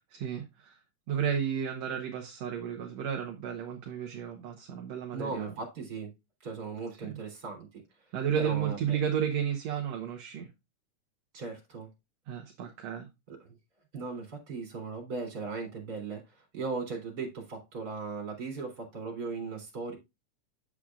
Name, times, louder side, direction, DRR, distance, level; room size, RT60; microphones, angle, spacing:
voice 1, 0.1-0.8 1.1-5.5 7.0-7.1 8.1-10.5 12.3-13.1, right 8 dB, 65° right, 2.0 m, -32 dB
voice 2, 5.1-6.1 6.4-7.7 8.4-9.0 11.3-11.9 13.3-13.5 13.9-16.2 16.5-19.9, right 4 dB, 30° right, 3.9 m, -37 dB
8.7 x 7.8 x 2.4 m
omnidirectional pair, 3.8 m